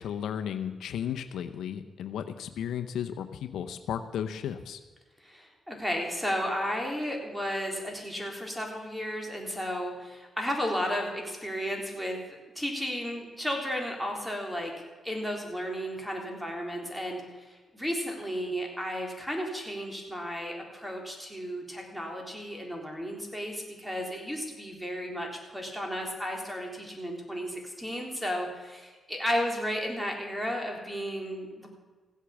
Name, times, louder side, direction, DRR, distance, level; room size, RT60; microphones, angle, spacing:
voice 1, 0.0-4.8, left 9 dB, 85° left, 9 dB, 0.7 m, -34 dB
voice 2, 5.2-14.7 15.0-31.7, equal, 5° right, 1 dB, 3.7 m, -33 dB
16.0 x 8.2 x 7.2 m, 1.3 s
cardioid pair, 65°, 0 cm